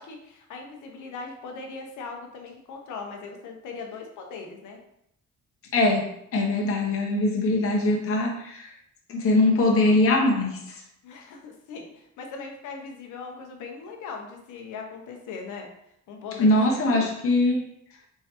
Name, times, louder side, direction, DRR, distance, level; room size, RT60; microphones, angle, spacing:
voice 1, 0.0-4.8 11.0-15.7 16.1-17.1, left 4 dB, 85° left, 2 dB, 0.9 m, -39 dB
voice 2, 5.7-6.1 6.3-8.7 9.1-10.8 16.4-17.6, left 2 dB, 50° left, 0 dB, 0.9 m, -22 dB
4.5 x 3.4 x 2.9 m, 0.75 s
cardioid pair, 90°, 30 cm